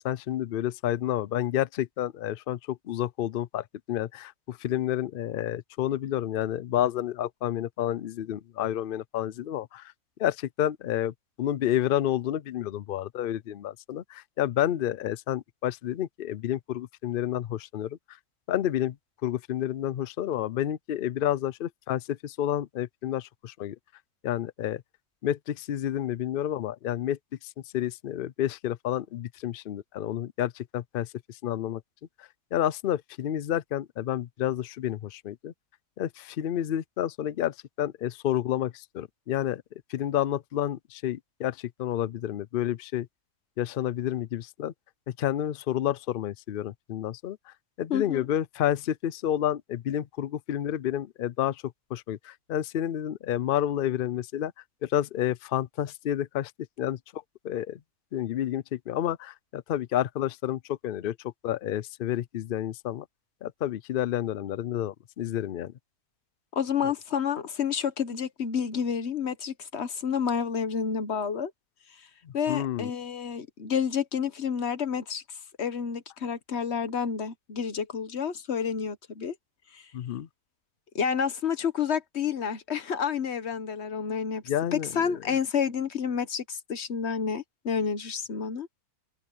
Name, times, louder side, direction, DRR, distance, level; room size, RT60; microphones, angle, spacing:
voice 1, 0.0-9.9 10.2-18.2 18.5-19.0 19.2-23.8 24.2-24.8 25.2-31.8 32.2-35.5 36.0-39.6 39.9-43.1 43.6-44.7 45.1-51.6 51.9-54.5 54.8-56.5 56.8-57.8 58.1-63.1 63.4-65.7 72.2-72.9 79.9-80.3 84.5-84.9, left 11 dB, 80° left, 0.4 m, -30 dB
voice 2, 47.9-48.2 66.5-71.5 72.3-79.3 79.7-79.8 80.9-84.4 84.7-88.7, left 7 dB, 50° left, 1.3 m, -29 dB
omnidirectional pair, 1.6 m